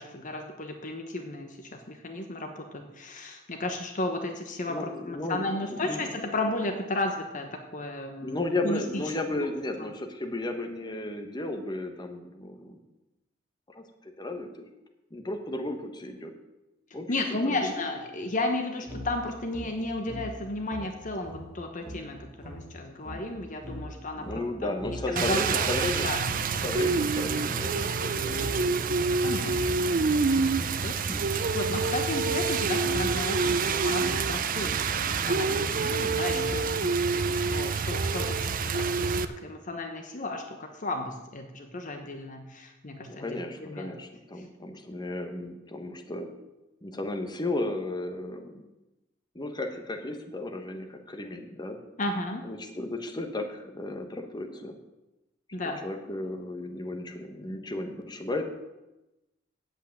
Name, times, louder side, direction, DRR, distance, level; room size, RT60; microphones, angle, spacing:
voice 1, 0.0-4.8 5.1-8.4 8.6-8.8 9.3-9.5 9.8-9.9 17.1-25.7 26.0-26.2 29.2-30.0 30.4-43.9 44.4-44.5 52.0-52.5 55.5-55.8, left 2 dB, 40° left, 5 dB, 1.0 m, -34 dB
voice 2, 4.6-6.2 8.2-12.8 13.7-14.6 15.1-16.3 16.9-17.2 17.4-17.9 24.1-26.1 26.6-28.9 43.1-46.3 46.8-48.6 49.3-51.8 52.4-54.8 55.6-58.4, left 2 dB, 20° left, 4 dB, 1.2 m, -34 dB
sound 1, 18.9-27.6 28.3-36.9, equal, 5° right, 3.2 m, -41 dB
Rain, 25.2-39.3, right 4 dB, 45° right, 0.6 m, -27 dB
8.3 x 8.2 x 8.7 m, 1.0 s
head